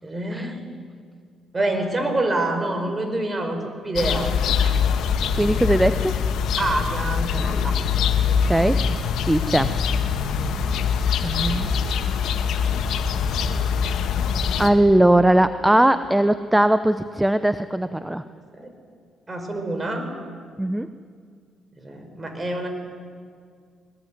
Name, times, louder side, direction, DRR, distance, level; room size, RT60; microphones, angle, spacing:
voice 1, 0.0-0.6 1.5-4.3 6.6-7.8 18.0-18.2 18.5-18.7 19.3-20.1 21.7-22.7, right 2 dB, 30° right, 6 dB, 5.3 m, -26 dB
sound 1, 4.0-14.7, left 6 dB, 75° left, 1.8 m, -23 dB
voice 2, 5.4-6.1 8.4-8.8 9.2-9.7 11.2-11.7 14.6-18.2 20.6-20.9, right 1 dB, 10° right, 12 dB, 0.8 m, -19 dB
21.5 x 20.5 x 9.5 m, 2.1 s
cardioid pair, 75°, 0 cm